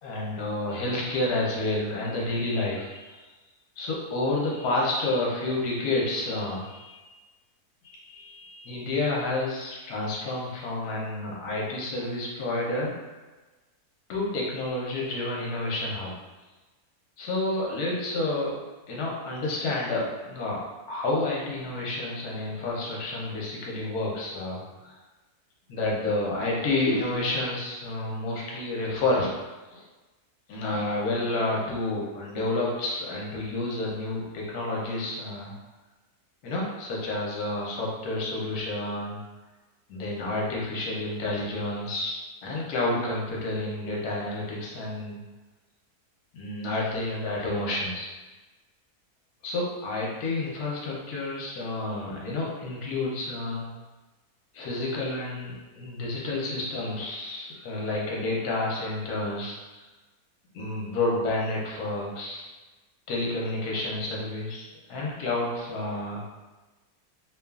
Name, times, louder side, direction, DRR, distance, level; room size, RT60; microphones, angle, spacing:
voice 1, 0.0-3.3 3.8-7.1 7.8-12.9 14.1-16.1 17.2-18.5 18.9-20.6 20.9-25.0 25.7-29.3 29.7-29.8 30.5-35.5 36.4-39.2 39.9-42.1 42.4-45.2 46.3-48.1 49.4-53.7 54.5-59.9 60.5-62.4 63.1-66.2, left 2 dB, 75° left, -3 dB, 1.2 m, -30 dB
2.9 x 2.3 x 2.3 m, 1.2 s
omnidirectional pair, 1.7 m